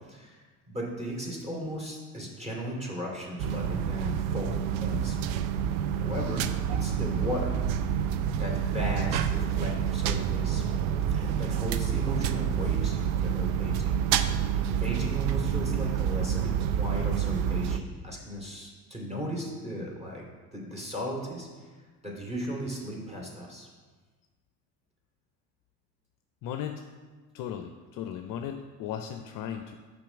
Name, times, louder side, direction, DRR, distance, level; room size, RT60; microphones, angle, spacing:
voice 1, 0.1-5.2 5.9-7.6 8.3-10.6 11.0-13.9 14.8-20.2 20.5-21.7 22.0-23.7, equal, 15° right, -2 dB, 2.6 m, -36 dB
sound 1, 3.4-17.8, right 8 dB, 60° right, 0.6 m, -28 dB
voice 2, 26.4-26.8 27.3-29.8, left 9 dB, 45° left, 6 dB, 0.6 m, -36 dB
5.9 x 5.4 x 6.0 m, 1.4 s
hypercardioid pair, 65°, 49 cm